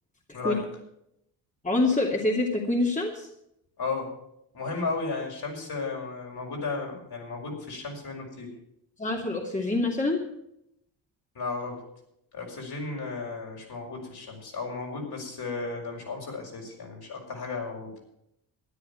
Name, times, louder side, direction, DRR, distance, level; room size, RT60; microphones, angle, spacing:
voice 1, 1.6-3.3 9.0-10.2, left 2 dB, 15° left, -1 dB, 2.7 m, -26 dB
voice 2, 3.8-4.1 4.5-8.5 11.4-11.8 12.3-17.9, left 3 dB, 55° left, 0 dB, 5.6 m, -34 dB
13.0 x 9.9 x 7.0 m, 0.78 s
supercardioid pair, 60°, 45 cm